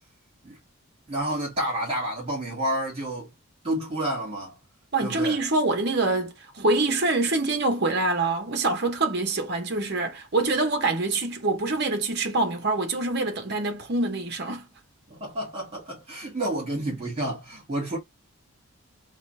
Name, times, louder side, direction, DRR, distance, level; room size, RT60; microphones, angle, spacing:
voice 1, 1.1-3.3 3.6-4.5 5.0-5.4 15.1-18.0, right 1 dB, 25° right, 2.2 m, -30 dB
voice 2, 4.9-14.7, right 2 dB, 50° right, 0.8 m, -25 dB
3.9 x 2.4 x 3.2 m
head